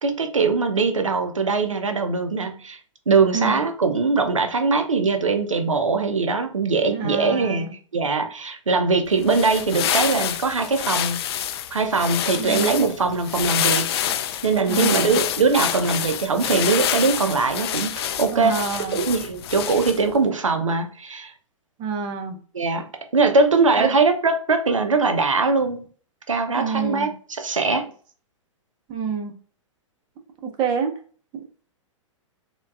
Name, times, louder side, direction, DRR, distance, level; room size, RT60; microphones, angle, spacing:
voice 1, 0.0-2.8 3.1-7.7 7.9-11.2 11.7-13.9 14.4-21.3 22.5-22.9 23.1-25.8 26.3-27.9, right 4 dB, 85° right, 6 dB, 0.5 m, -21 dB
voice 2, 6.9-7.7 12.4-12.8 14.7-15.2 18.3-19.0 21.8-22.4 23.8-23.9 26.5-27.1 28.9-29.3 30.4-30.9, right 6 dB, 30° right, 5 dB, 0.6 m, -27 dB
sound 1, 9.1-20.2, left 10 dB, 55° left, 0.4 m, -27 dB
4.4 x 2.3 x 2.3 m, 0.43 s
figure-of-eight pair, 105°, 16 cm